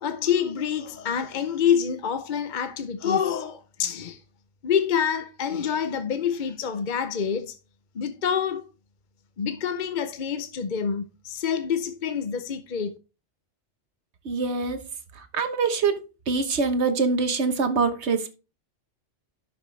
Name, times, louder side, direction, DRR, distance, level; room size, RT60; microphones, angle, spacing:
voice 1, 0.0-4.2 4.6-7.5 7.9-8.6 9.4-13.0, left 7 dB, 50° left, 0.8 m, -27 dB
voice 2, 14.2-14.8 15.3-15.9 16.3-18.3, right 4 dB, 70° right, 1.4 m, -24 dB
11.0 x 6.0 x 3.3 m
omnidirectional pair, 1.2 m